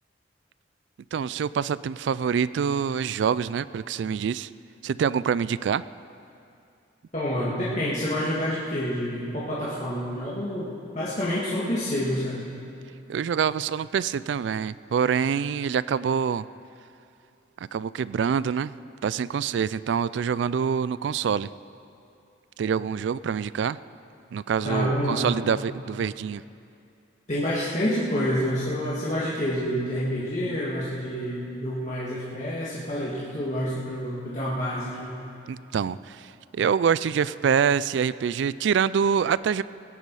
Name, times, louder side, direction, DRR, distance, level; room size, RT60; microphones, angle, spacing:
voice 1, 1.1-4.5 4.8-5.8 13.1-16.5 17.7-18.7 19.0-21.5 22.6-23.8 24.3-26.4 35.5-39.6, right 7 dB, 70° right, 18 dB, 0.3 m, -25 dB
voice 2, 7.1-10.7 10.9-12.5 24.6-25.3 27.3-35.2, equal, 40° left, -9 dB, 2.2 m, -28 dB
21.5 x 11.0 x 4.8 m, 2.6 s
head